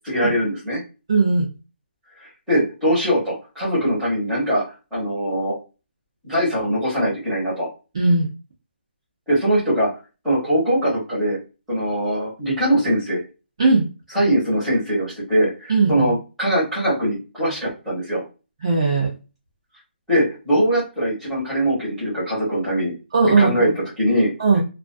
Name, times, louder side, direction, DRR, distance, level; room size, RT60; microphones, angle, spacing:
voice 1, 0.0-0.8 2.2-4.6 4.9-5.6 6.2-7.7 9.3-9.9 10.2-11.4 11.7-13.2 14.1-18.2 20.1-22.9 23.4-24.3, equal, ahead, -10 dB, 0.8 m, -21 dB
voice 2, 1.1-1.4 7.9-8.3 13.6-13.9 15.7-16.1 18.6-19.1 23.1-23.7 24.4-24.6, right 3 dB, 25° right, -4 dB, 0.4 m, -18 dB
2.3 x 2.3 x 2.4 m, 0.30 s
hypercardioid pair, 180°, 6 cm